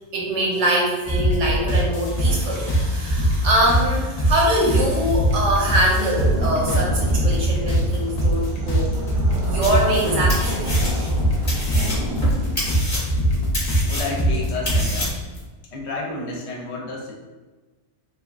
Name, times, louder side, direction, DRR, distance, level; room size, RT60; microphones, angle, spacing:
voice 1, 0.1-9.0 9.5-11.1, right 1 dB, 85° right, -3 dB, 1.1 m, -23 dB
sound 1, 1.1-15.1, equal, 50° left, 0.4 m, -22 dB
sound 2, 6.1-12.7, right 1 dB, 55° right, 0.6 m, -31 dB
sound 3, 9.6-10.0 10.3-11.2 11.5-15.4, equal, 30° left, 0.9 m, -28 dB
voice 2, 13.8-15.1 15.7-17.1, left 3 dB, 70° left, -1 dB, 0.8 m, -31 dB
3.0 x 2.3 x 2.3 m, 1.3 s
omnidirectional pair, 1.2 m